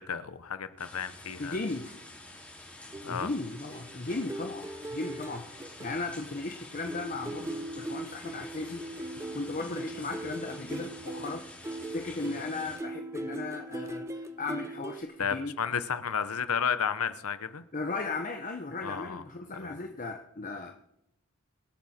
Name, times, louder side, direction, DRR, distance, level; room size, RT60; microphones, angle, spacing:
voice 1, 0.0-1.6 3.0-3.3 15.2-17.6 18.8-19.2 19.6-19.7, left 7 dB, 85° left, 13 dB, 0.9 m, -32 dB
sound 1, 0.8-12.8, left 2 dB, 5° left, 4.5 m, -48 dB
voice 2, 1.4-2.0 3.0-4.6 4.9-11.4 11.9-15.6 17.7-20.7, left 3 dB, 40° left, 4 dB, 0.9 m, -36 dB
sound 2, 2.9-6.6 6.9-15.0, right 1 dB, 15° right, 0.7 m, -40 dB
25.5 x 8.7 x 4.3 m, 0.80 s
head